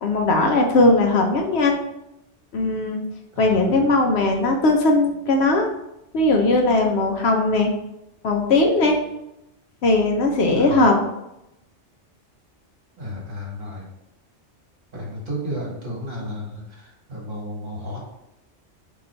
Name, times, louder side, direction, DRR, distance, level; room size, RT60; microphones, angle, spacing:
voice 1, 0.0-1.8 2.5-3.0 3.4-5.7 6.1-7.7 8.2-9.0 9.8-11.0, left 2 dB, 65° left, 2 dB, 0.9 m, -19 dB
voice 2, 3.3-3.8 10.5-10.9 13.0-13.9 14.9-18.0, equal, 50° right, -3 dB, 1.5 m, -33 dB
3.9 x 2.9 x 4.3 m, 0.87 s
omnidirectional pair, 1.2 m